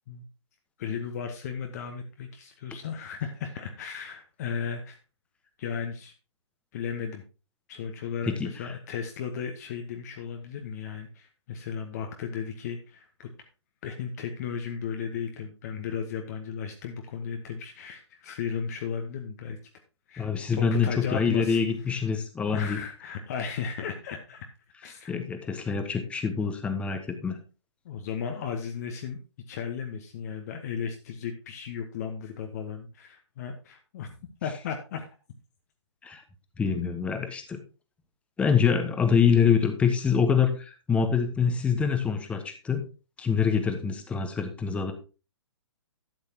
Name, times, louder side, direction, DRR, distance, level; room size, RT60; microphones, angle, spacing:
voice 1, 0.8-5.0 5.6-6.1 6.7-7.2 7.7-13.3 13.8-19.6 20.1-20.3 20.5-21.6 21.9-22.0 22.4-24.5 24.8-25.1 27.8-29.2 29.5-34.1 34.4-35.1, left 7 dB, 35° left, 4 dB, 1.2 m, -35 dB
voice 2, 8.2-8.7 20.2-22.8 25.1-27.4 36.0-36.2 36.6-37.6 38.4-42.8 43.2-44.9, left 6 dB, 10° left, 7 dB, 1.1 m, -25 dB
12.0 x 8.6 x 2.9 m, 0.32 s
figure-of-eight pair, 125°, 15 cm